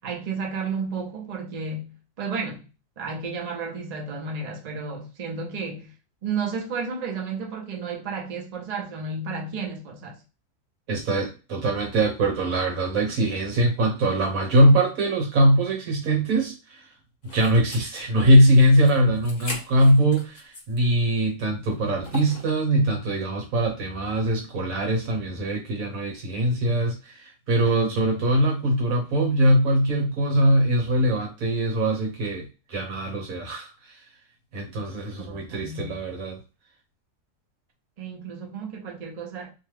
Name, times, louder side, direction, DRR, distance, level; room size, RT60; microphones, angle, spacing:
voice 1, 0.0-2.7 3.0-5.9 6.2-10.2 35.2-35.9 38.0-39.5, right 4 dB, 45° right, 0.5 m, -32 dB
voice 2, 10.9-16.9 17.3-33.7 34.5-36.4, right 1 dB, 65° right, 1.4 m, -22 dB
sound 1, 17.2-20.9 21.3-21.4 22.0-22.6, left 2 dB, 35° left, 0.9 m, -40 dB
2.9 x 2.3 x 3.2 m
omnidirectional pair, 1.7 m